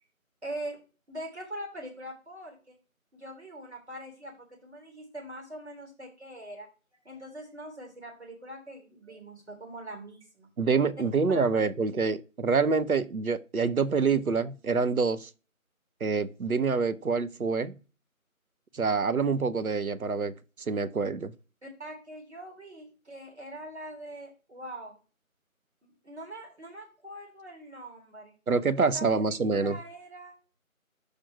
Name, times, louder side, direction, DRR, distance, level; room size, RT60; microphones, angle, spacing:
voice 1, 0.4-0.8 1.1-2.8 3.1-6.7 7.0-10.5 11.3-11.6 21.6-24.9 25.8-28.3 28.8-30.4, right 1 dB, 50° right, 3.7 m, -43 dB
voice 2, 10.6-15.3 16.0-17.7 18.7-20.3 20.7-21.3 28.5-29.8, right 4 dB, 80° right, 0.8 m, -26 dB
6.6 x 5.2 x 4.7 m
figure-of-eight pair, 175°, 42 cm